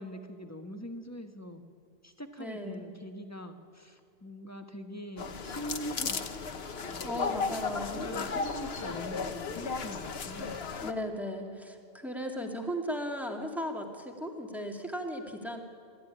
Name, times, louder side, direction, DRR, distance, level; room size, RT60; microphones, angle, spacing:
voice 1, 0.0-1.6 2.0-6.4 6.9-7.2 7.9-10.6, equal, 15° left, 6 dB, 1.4 m, -43 dB
voice 2, 2.4-2.8 7.0-8.0 10.8-15.6, equal, ahead, 2 dB, 2.4 m, -36 dB
sound 1, 5.2-10.9, left 5 dB, 80° left, 1.4 m, -35 dB
25.5 x 14.0 x 9.9 m, 2.3 s
omnidirectional pair, 1.0 m